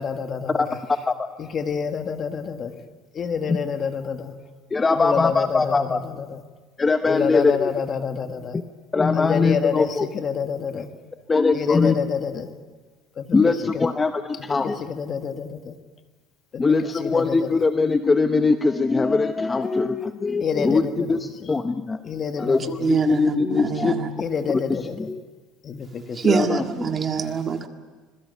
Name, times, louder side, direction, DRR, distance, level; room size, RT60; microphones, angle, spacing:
voice 1, 0.0-1.0 1.4-2.8 3.1-4.3 4.9-6.4 6.9-8.6 9.1-10.9 11.5-12.6 13.2-13.9 14.3-15.8 16.5-17.6 20.4-21.6 22.0-23.2 24.2-25.1 25.6-26.5, left 6 dB, 30° left, 7 dB, 1.7 m, -29 dB
voice 2, 0.5-1.3 3.5-3.6 4.7-6.0 6.8-7.7 8.9-10.1 11.3-12.0 13.3-14.8 16.6-22.0 22.4-23.9 25.0-25.2 26.3-26.6, left 4 dB, 15° left, 8 dB, 0.8 m, -21 dB
voice 3, 22.8-24.1 26.1-27.7, right 5 dB, 25° right, 5 dB, 1.9 m, -24 dB
26.0 x 22.0 x 8.3 m, 1.4 s
cardioid pair, 150°, 0 cm